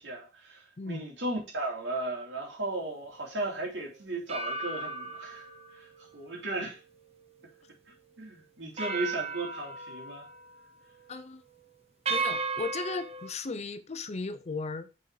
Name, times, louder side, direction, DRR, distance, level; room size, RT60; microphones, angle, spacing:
voice 1, 0.0-5.4 5.7-6.8 8.2-10.2, right 2 dB, 70° right, 2.7 m, -36 dB
sound 1, 2.8-3.0 4.3-7.7 8.1-8.2 8.8-10.6 10.9-11.2 12.1-13.3, right 4 dB, 35° right, 0.9 m, -36 dB
voice 2, 11.1-11.4 12.1-14.9, left 4 dB, 35° left, 0.6 m, -36 dB
6.4 x 4.2 x 4.8 m
head